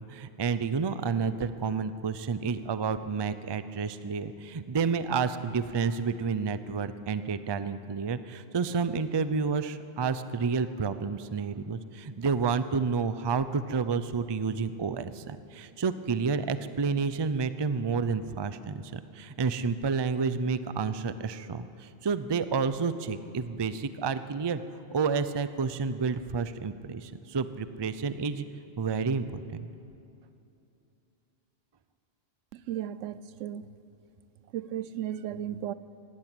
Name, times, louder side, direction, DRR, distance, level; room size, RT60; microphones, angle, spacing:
voice 1, 0.1-24.6 24.9-28.5 28.8-29.7, right 5 dB, 35° right, 12 dB, 0.4 m, -30 dB
voice 2, 32.5-33.7 34.5-35.7, right 11 dB, 80° right, 16 dB, 1.0 m, -35 dB
18.0 x 16.5 x 9.1 m, 2.8 s
omnidirectional pair, 1.3 m